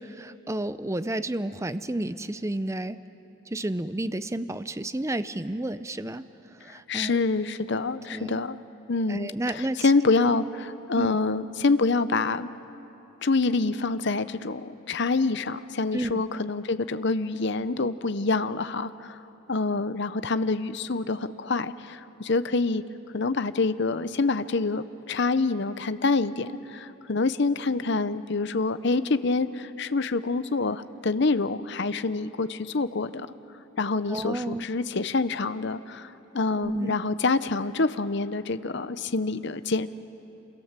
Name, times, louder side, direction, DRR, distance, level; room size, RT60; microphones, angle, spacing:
voice 1, 0.0-3.0 3.5-6.2 6.6-7.2 8.1-8.4 9.1-9.9 10.2-10.3 11.0-11.2 15.9-16.2 34.1-34.6 36.6-37.0, right 1 dB, 15° right, 13 dB, 0.5 m, -31 dB
voice 2, 6.9-8.6 8.9-12.5 13.2-19.2 19.5-22.8 23.1-33.3 33.8-39.9, left 3 dB, 55° left, 12 dB, 0.8 m, -26 dB
28.0 x 27.5 x 7.5 m, 3.0 s
head